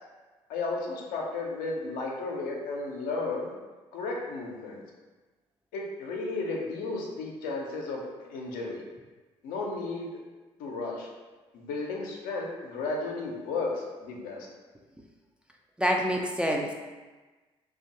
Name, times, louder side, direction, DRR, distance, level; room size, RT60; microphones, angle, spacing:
voice 1, 0.5-3.5 3.9-4.8 5.7-8.8 9.4-10.1 10.6-11.1 11.5-14.5, left 3 dB, 70° left, -1 dB, 0.5 m, -33 dB
voice 2, 15.8-16.7, equal, 5° right, 0 dB, 0.3 m, -26 dB
2.5 x 2.2 x 2.7 m, 1.3 s
hypercardioid pair, 50°, 15 cm